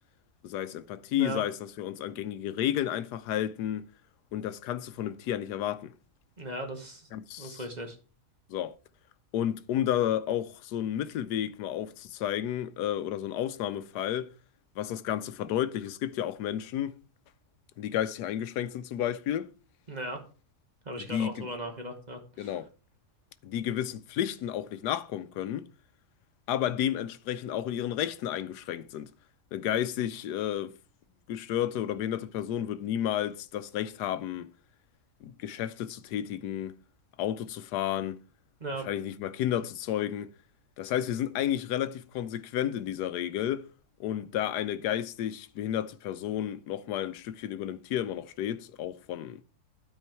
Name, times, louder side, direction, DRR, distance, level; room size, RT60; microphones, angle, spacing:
voice 1, 0.4-3.8 4.3-5.9 7.1-7.6 8.5-8.7 9.3-14.3 14.8-16.9 17.8-19.5 21.0-21.5 22.4-22.6 23.4-25.7 26.5-29.1 29.5-30.7 31.3-34.5 35.2-36.8 37.2-38.2 38.8-40.3 40.8-43.7 44.0-49.4, left 11 dB, 90° left, 1.2 m, -31 dB
voice 2, 6.4-7.1 7.4-8.0 19.9-20.2 20.8-22.6 38.6-38.9, right 1 dB, 30° right, 1.3 m, -37 dB
12.5 x 4.6 x 4.4 m
omnidirectional pair, 1.7 m